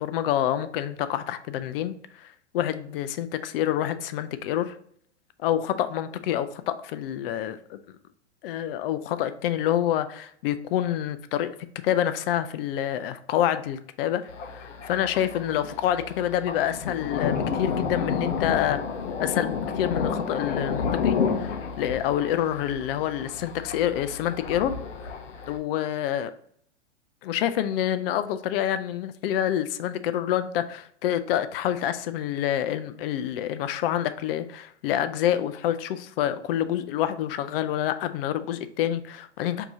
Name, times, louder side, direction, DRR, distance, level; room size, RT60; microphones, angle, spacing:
voice 1, 0.0-4.8 5.4-7.8 8.4-11.5 11.8-18.8 19.2-24.7 25.0-25.1 25.5-26.3 27.2-39.7, left 11 dB, 50° left, 12 dB, 0.5 m, -27 dB
Thunder, 14.3-25.6, left 6 dB, 75° left, 0.8 m, -31 dB
4.7 x 2.7 x 3.5 m, 0.64 s
hypercardioid pair, 115°, 36 cm